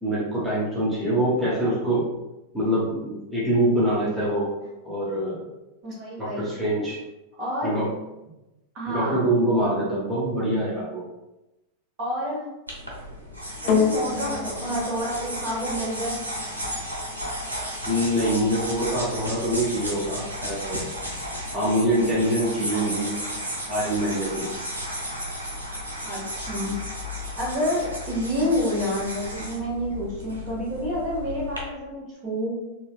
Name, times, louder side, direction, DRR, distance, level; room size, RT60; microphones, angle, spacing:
voice 1, 0.0-2.1 2.5-4.5 4.8-5.5 6.2-7.0 7.6-7.9 8.9-11.0 17.9-20.8 21.5-23.2 23.7-24.5, right 1 dB, 5° right, -9 dB, 0.9 m, -24 dB
voice 2, 5.8-6.5 7.4-7.8 8.7-9.2 12.0-12.5 13.6-16.2 22.7-22.8 23.3-23.4 26.0-26.8 27.4-32.6, equal, 40° right, -5 dB, 1.3 m, -29 dB
sound 1, 12.7-31.6, equal, 80° right, 0.7 m, -34 dB
sound 2, 13.7-22.2 23.0-23.1, left 6 dB, 45° left, 0.6 m, -32 dB
4.2 x 2.3 x 2.3 m, 0.97 s
figure-of-eight pair, 90°, 0 cm